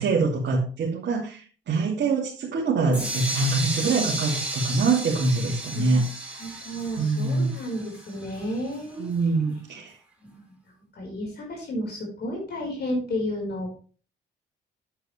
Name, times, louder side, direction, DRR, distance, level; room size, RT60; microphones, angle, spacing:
voice 1, 0.0-6.0 7.0-7.5 9.0-10.0, right 3 dB, 65° right, -3 dB, 2.4 m, -24 dB
sound 1, 2.9-8.7, right 1 dB, 5° right, 4.2 m, -33 dB
voice 2, 6.4-9.1 9.7-9.8 10.2-13.7, equal, 55° left, 0 dB, 4.6 m, -32 dB
8.7 x 8.6 x 3.3 m, 0.38 s
cardioid pair, 90°, 20 cm